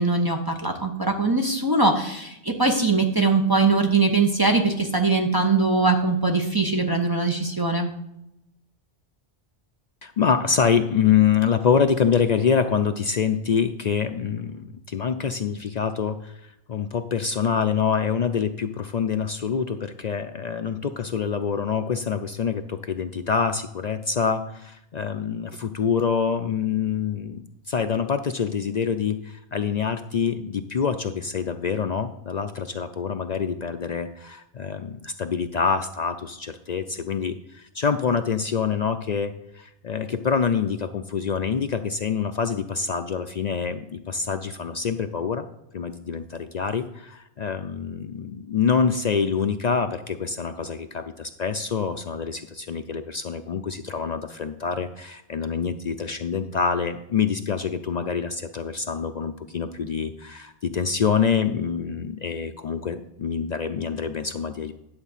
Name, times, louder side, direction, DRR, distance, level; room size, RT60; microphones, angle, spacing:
voice 1, 0.0-7.9, right 3 dB, 20° right, 2 dB, 0.9 m, -21 dB
voice 2, 10.0-45.5 45.7-64.7, left 6 dB, 55° left, 8 dB, 0.4 m, -26 dB
11.0 x 4.0 x 7.2 m, 0.84 s
omnidirectional pair, 1.2 m